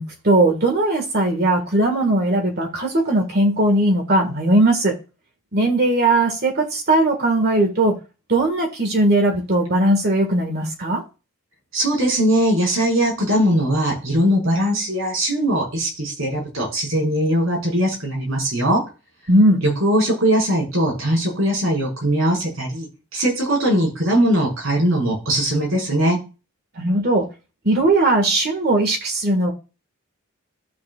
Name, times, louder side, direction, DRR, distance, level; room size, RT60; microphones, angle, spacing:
voice 1, 0.0-4.9 5.5-7.9 8.3-11.0 19.3-19.6 26.8-27.2 27.6-29.5, right 1 dB, 50° right, 3 dB, 2.0 m, -18 dB
voice 2, 11.7-18.8 19.6-22.9 23.1-26.2, right 1 dB, 70° right, -2 dB, 5.9 m, -20 dB
14.5 x 6.9 x 2.5 m, 0.31 s
head